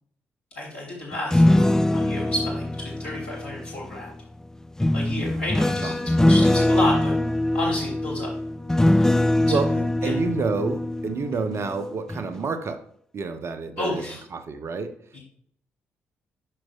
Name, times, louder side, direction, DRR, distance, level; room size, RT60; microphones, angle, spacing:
voice 1, 0.5-4.1 4.9-7.1 7.5-8.3 8.9-9.0 9.5-10.1 11.3-11.4 13.8-14.2 15.1-15.2, left 1 dB, 80° left, -4 dB, 3.0 m, -31 dB
sound 1, 1.1-4.0 4.8-11.7 12.1-12.4, left 1 dB, 10° left, 0.3 m, -22 dB
voice 2, 10.0-12.8 13.1-14.0 14.3-15.0, right 4 dB, 45° right, 9 dB, 0.9 m, -28 dB
8.9 x 6.2 x 2.5 m, 0.64 s
figure-of-eight pair, 40°, 6 cm